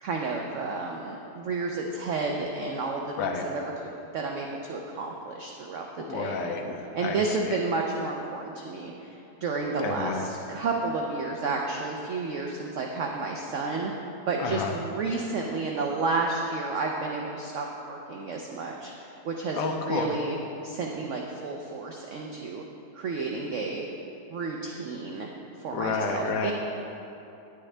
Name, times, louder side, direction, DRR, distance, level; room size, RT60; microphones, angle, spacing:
voice 1, 0.0-3.6 4.1-6.5 6.9-13.9 14.3-20.4 20.6-22.6 22.9-23.9 24.3-25.3 25.6-26.5, right 3 dB, 60° right, 0 dB, 0.8 m, -31 dB
voice 2, 6.0-7.2 7.5-7.6 9.8-10.2 14.4-14.7 19.5-20.1 25.7-26.5, left 5 dB, 80° left, 2 dB, 1.3 m, -30 dB
10.0 x 9.9 x 3.3 m, 2.8 s
omnidirectional pair, 1.8 m